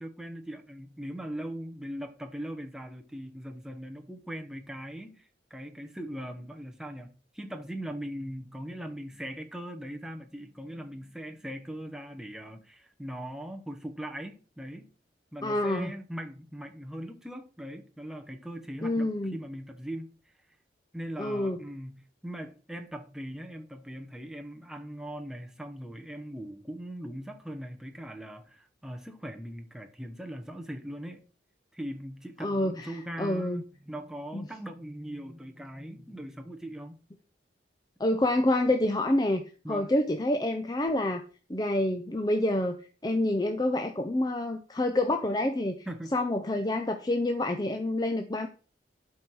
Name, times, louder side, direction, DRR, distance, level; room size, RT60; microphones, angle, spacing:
voice 1, 0.0-14.9 15.3-20.1 20.9-31.2 31.7-37.0 39.6-39.9 45.9-46.1, equal, 5° right, 0.9 m, -40 dB
voice 2, 15.4-15.9 18.8-19.4 21.2-21.6 32.4-32.9 33.2-33.6 34.3-34.4 38.0-41.2 41.5-42.8 43.0-45.9 46.1-48.5, left 1 dB, 20° left, 0.6 m, -27 dB
11.5 x 4.5 x 4.7 m
head